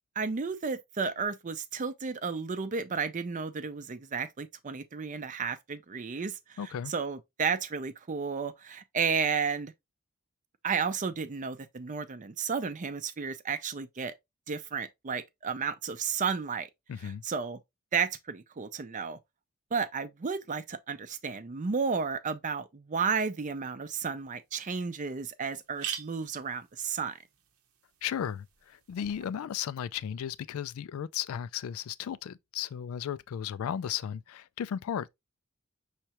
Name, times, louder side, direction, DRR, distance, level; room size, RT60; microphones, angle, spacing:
voice 1, 0.2-9.7 10.6-14.1 14.5-16.7 17.0-17.6 17.9-19.2 19.7-27.2, right 5 dB, 35° right, 0.5 m, -33 dB
voice 2, 6.6-6.9 16.9-17.2 28.0-35.1, left 9 dB, 70° left, 0.3 m, -35 dB
sound 1, 24.2-24.3 24.8-24.9 25.1-25.2 25.5-29.3, right 9 dB, 80° right, 0.9 m, -44 dB
5.7 x 3.2 x 2.9 m
head